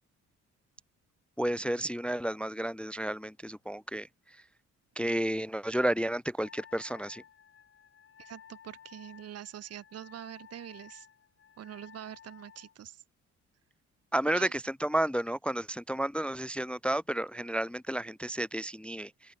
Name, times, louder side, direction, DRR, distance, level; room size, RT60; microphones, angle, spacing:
voice 1, 1.4-4.4 5.0-7.2 14.1-19.3, right 1 dB, 5° left, 0.5 m, -32 dB
Wind instrument woodwind instrument, 6.4-12.8, left 8 dB, 45° left, 1.4 m, -54 dB
voice 2, 8.2-11.1 11.6-13.0 14.3-14.5, right 11 dB, 55° right, 0.8 m, -44 dB
open air
cardioid pair, 90°, 30 cm